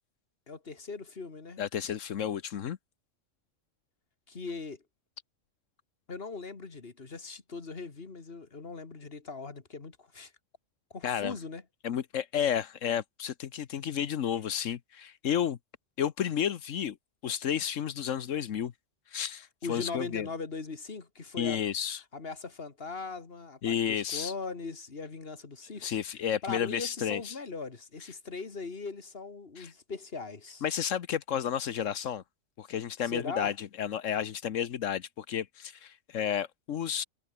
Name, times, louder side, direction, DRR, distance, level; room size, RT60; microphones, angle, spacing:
voice 1, 0.5-1.6 4.3-4.8 6.1-10.3 10.9-11.6 19.6-21.6 22.1-26.0 26.4-30.6 33.0-33.5, left 4 dB, 50° left, 2.3 m, -40 dB
voice 2, 1.6-2.8 11.0-11.3 11.8-15.6 16.0-17.0 17.2-18.7 19.1-20.3 21.4-22.0 23.6-24.3 25.8-27.4 29.6-29.7 30.6-32.2 32.6-37.0, left 9 dB, 85° left, 1.3 m, -32 dB
omnidirectional pair, 1.3 m